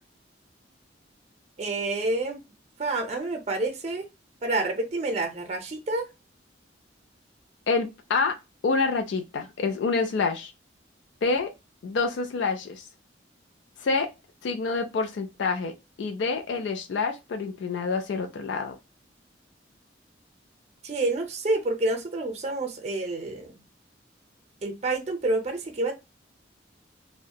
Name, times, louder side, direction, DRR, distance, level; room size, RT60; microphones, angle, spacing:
voice 1, 1.6-2.4 2.8-4.1 4.4-6.1 20.8-23.6 24.6-25.9, right 2 dB, 35° right, 0.5 m, -28 dB
voice 2, 7.7-8.4 8.6-10.5 11.2-11.5 11.8-12.9 13.8-14.1 14.4-15.7 16.0-18.8, left 4 dB, 75° left, 0.4 m, -27 dB
2.7 x 2.1 x 2.2 m
head